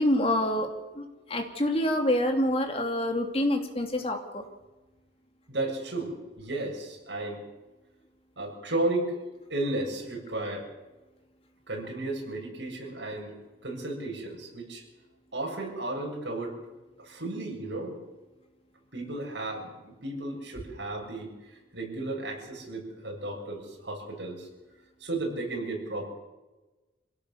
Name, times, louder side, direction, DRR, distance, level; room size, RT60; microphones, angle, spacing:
voice 1, 0.0-4.4, left 1 dB, 30° left, 4 dB, 2.8 m, -27 dB
voice 2, 5.5-7.4 8.4-9.2 9.5-10.7 11.7-13.3 13.6-14.8 15.3-16.6 17.0-18.0 18.9-24.5 25.0-26.1, right 2 dB, 70° right, 0 dB, 7.3 m, -34 dB
26.0 x 17.0 x 7.2 m, 1.1 s
head